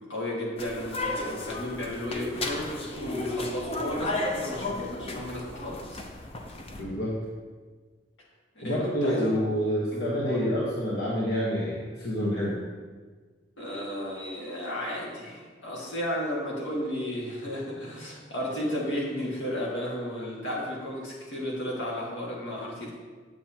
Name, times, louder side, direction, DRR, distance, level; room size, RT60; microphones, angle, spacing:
voice 1, 0.0-6.0 8.6-9.4 9.9-10.5 13.6-22.9, equal, 85° left, -4 dB, 1.9 m, -33 dB
sound 1, 0.6-6.8, left 2 dB, 35° left, 0.6 m, -34 dB
voice 2, 6.8-7.1 8.6-12.6, equal, 65° left, -5 dB, 1.2 m, -28 dB
7.8 x 7.5 x 2.9 m, 1.4 s
head